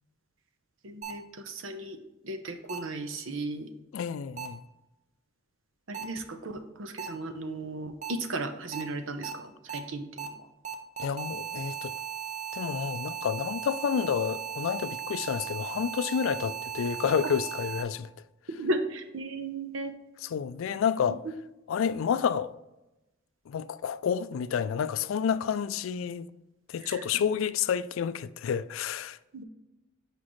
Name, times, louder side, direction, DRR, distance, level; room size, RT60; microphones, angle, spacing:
voice 1, 0.8-2.0 2.2-3.7 5.9-10.3 18.5-19.9 26.9-27.0 29.3-29.4, right 2 dB, 80° right, 0.8 m, -35 dB
sound 1, 1.0-1.1 2.7-2.8 4.4-4.5 5.9-6.0 7.0-7.1 8.0-8.1 8.7-8.8 9.2-9.3 9.7-9.8 10.2-10.3 10.6-17.8, right 8 dB, 35° right, 0.7 m, -37 dB
voice 2, 3.9-4.6 11.0-11.9 12.5-18.1 20.2-21.2 21.7-22.5 23.5-26.3 26.7-29.2, left 7 dB, 80° left, 0.3 m, -29 dB
6.2 x 5.1 x 3.1 m
head